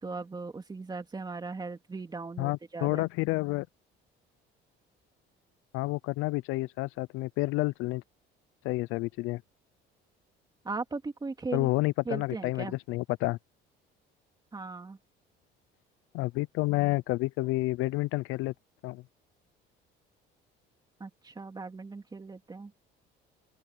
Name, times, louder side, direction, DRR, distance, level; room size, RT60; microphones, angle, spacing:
voice 1, 0.0-3.0 10.6-11.7 12.0-12.8 14.5-15.0 21.0-22.7, right 3 dB, 20° right, 2.6 m, -38 dB
voice 2, 2.4-3.7 5.7-8.0 8.6-9.4 11.5-13.4 16.1-18.5 18.8-19.0, left 20 dB, 80° left, 0.6 m, -29 dB
open air
cardioid pair, 110°, 21 cm